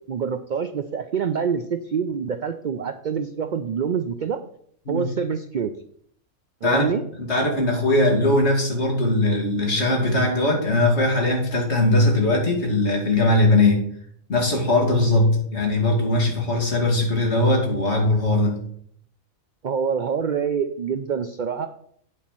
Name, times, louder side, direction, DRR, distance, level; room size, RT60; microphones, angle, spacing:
voice 1, 0.1-4.4 4.9-5.7 6.6-7.0 19.6-21.7, right 6 dB, 80° right, 8 dB, 0.4 m, -26 dB
voice 2, 6.6-13.8 14.3-18.6, left 2 dB, 50° left, 0 dB, 2.4 m, -20 dB
8.6 x 4.2 x 7.2 m, 0.64 s
omnidirectional pair, 1.5 m